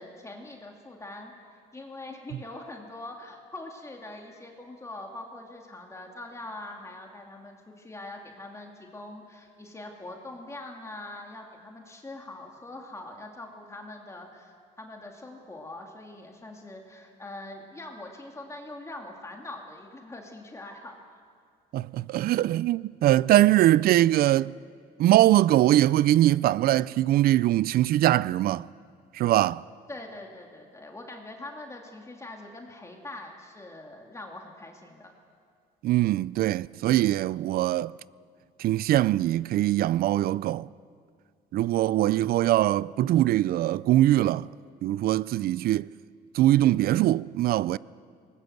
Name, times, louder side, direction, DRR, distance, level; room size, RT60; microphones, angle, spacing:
voice 1, 0.0-1.3 1.7-20.9 29.9-35.1, left 2 dB, 15° left, 2.4 m, -43 dB
voice 2, 21.7-24.5 25.0-28.7 29.1-29.6 35.8-37.9 38.6-40.7 41.5-44.5 44.8-45.9 46.3-47.8, right 14 dB, 60° right, 0.4 m, -22 dB
20.0 x 19.0 x 7.9 m
cardioid pair, 110°, 17 cm